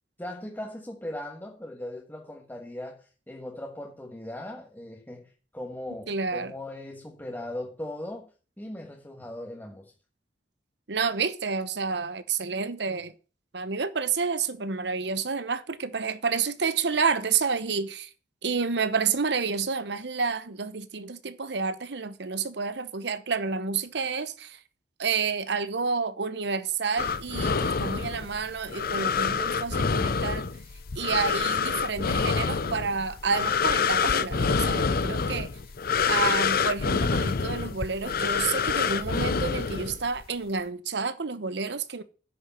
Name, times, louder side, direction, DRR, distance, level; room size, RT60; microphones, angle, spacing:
voice 1, 0.2-8.3 8.6-9.9, left 1 dB, 10° left, 1.4 m, -39 dB
voice 2, 6.1-6.5 10.9-13.1 13.5-18.1 18.4-24.6 25.0-30.5 30.9-35.5 36.1-42.0, right 5 dB, 70° right, 1.0 m, -29 dB
sound 1, 27.0-40.3, left 5 dB, 55° left, 0.6 m, -27 dB
10.0 x 6.6 x 7.0 m
head